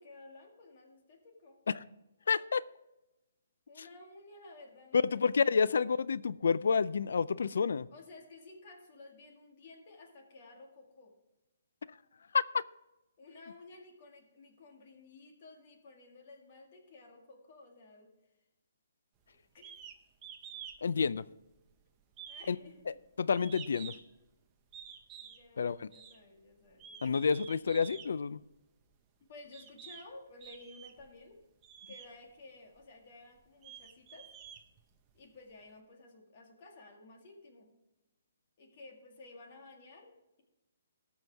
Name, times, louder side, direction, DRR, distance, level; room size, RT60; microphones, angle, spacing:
voice 1, 0.0-1.6 3.7-5.8 7.9-11.1 13.2-18.1 19.5-19.7 22.3-23.0 25.2-27.3 29.3-31.4 31.9-34.3 35.1-37.7 38.6-40.4, left 2 dB, 35° left, 1.8 m, -54 dB
voice 2, 2.3-2.6 4.9-7.9 12.3-12.6 20.8-21.3 22.5-22.6 22.9-23.9 25.6-25.9 27.0-28.4, left 5 dB, 70° left, 0.4 m, -29 dB
sound 1, 19.6-20.0 20.2-20.8 21.1-21.7 22.1-24.2 24.7-25.4 25.9-26.2 26.7-28.1 28.9-29.0 29.5-30.1 30.4-31.1 31.6-32.1 32.7-32.8 33.4-35.2, right 8 dB, 15° right, 0.6 m, -49 dB
18.5 x 6.2 x 3.4 m
hypercardioid pair, 175°, 0 cm